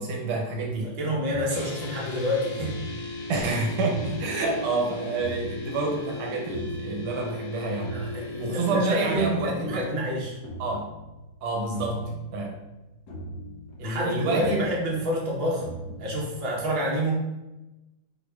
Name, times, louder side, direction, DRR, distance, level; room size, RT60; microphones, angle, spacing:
voice 1, 0.0-0.9 3.3-7.9 8.4-10.0 10.6-10.8 11.4-12.0 12.3-12.6 13.8-14.7, right 3 dB, 75° right, 1 dB, 1.6 m, -28 dB
voice 2, 0.8-2.8 7.9-10.4 13.8-15.7 16.0-17.2, equal, 35° right, -4 dB, 0.9 m, -28 dB
sound 1, 1.0-16.3, right 1 dB, 65° left, 1.0 m, -42 dB
sound 2, 1.5-9.2, left 2 dB, 85° left, 1.7 m, -37 dB
4.8 x 4.6 x 2.3 m, 1.0 s
omnidirectional pair, 2.4 m